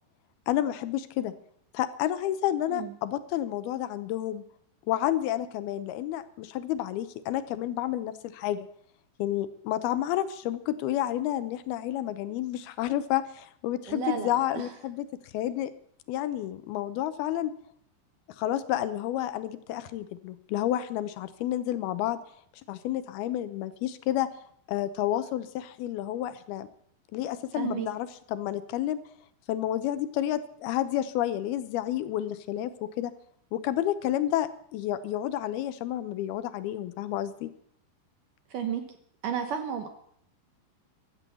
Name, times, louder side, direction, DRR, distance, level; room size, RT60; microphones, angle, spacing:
voice 1, 0.5-1.3 1.7-4.4 4.9-8.7 9.2-15.1 15.3-15.7 16.1-17.5 18.4-22.2 22.7-24.3 24.7-26.7 27.1-29.0 29.5-33.1 33.5-37.5, left 12 dB, 75° left, 13 dB, 2.5 m, -30 dB
voice 2, 13.9-14.7 27.6-27.9 38.5-38.8 39.2-39.9, right 8 dB, 65° right, 7 dB, 2.2 m, -32 dB
15.5 x 12.0 x 7.0 m, 0.65 s
omnidirectional pair, 4.8 m